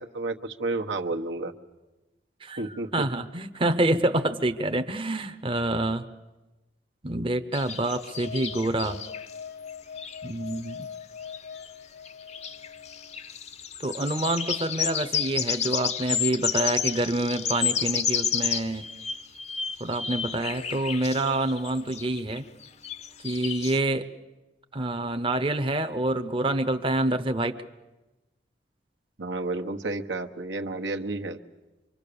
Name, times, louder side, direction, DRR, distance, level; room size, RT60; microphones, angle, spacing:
voice 1, 0.0-1.5 2.6-3.0 29.2-31.4, right 2 dB, 90° right, 4 dB, 1.3 m, -31 dB
voice 2, 2.9-6.0 7.0-9.0 10.2-10.9 13.8-18.9 19.8-22.4 23.2-24.1 24.7-27.6, right 1 dB, 30° right, 8 dB, 0.8 m, -27 dB
sound 1, 7.5-9.3 9.7-9.8 10.0-10.2 10.5-10.7 11.3-11.7 12.1-23.8, left 8 dB, 40° left, 0.7 m, -31 dB
sound 2, 8.1-13.2, left 7 dB, 80° left, 0.9 m, -42 dB
25.5 x 24.5 x 6.9 m, 1.1 s
head